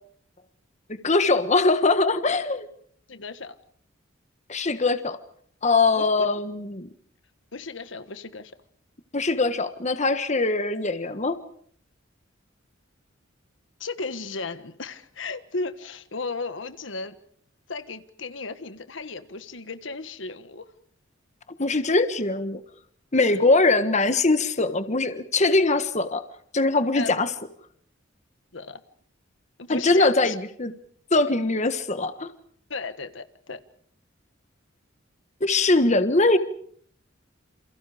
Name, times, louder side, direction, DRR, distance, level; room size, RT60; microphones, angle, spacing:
voice 1, 0.9-2.7 4.5-5.2 5.6-6.9 9.1-11.4 21.6-22.6 23.1-26.2 26.5-27.3 29.7-30.7 31.1-32.3 35.4-36.4, left 3 dB, 35° left, 1.4 m, -22 dB
voice 2, 3.1-3.5 6.0-6.1 7.5-8.5 13.8-17.1 17.7-20.7 23.3-23.4 26.9-27.1 28.5-28.8 29.6-30.3 32.7-33.6, left 3 dB, 70° left, 1.5 m, -35 dB
29.0 x 28.5 x 5.0 m
head